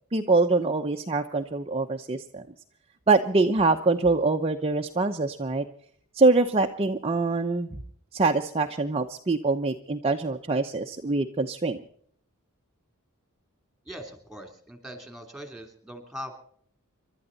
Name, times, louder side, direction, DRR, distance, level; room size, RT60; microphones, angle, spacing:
voice 1, 0.1-2.4 3.1-5.7 6.1-7.8 8.1-11.8, right 3 dB, 25° right, 4 dB, 0.8 m, -24 dB
voice 2, 13.8-16.4, equal, ahead, 6 dB, 3.1 m, -41 dB
28.5 x 12.5 x 4.0 m, 0.62 s
head